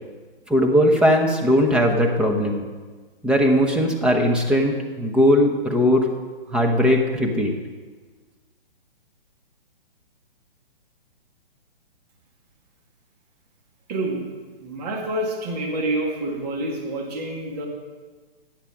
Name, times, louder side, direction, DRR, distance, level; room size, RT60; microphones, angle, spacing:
voice 1, 0.5-2.7 3.2-6.1 6.5-7.5, equal, 5° right, 1 dB, 0.9 m, -19 dB
voice 2, 13.9-14.2 14.6-17.7, right 1 dB, 45° right, -1 dB, 2.3 m, -27 dB
13.5 x 9.1 x 5.1 m, 1.4 s
hypercardioid pair, 135°, 29 cm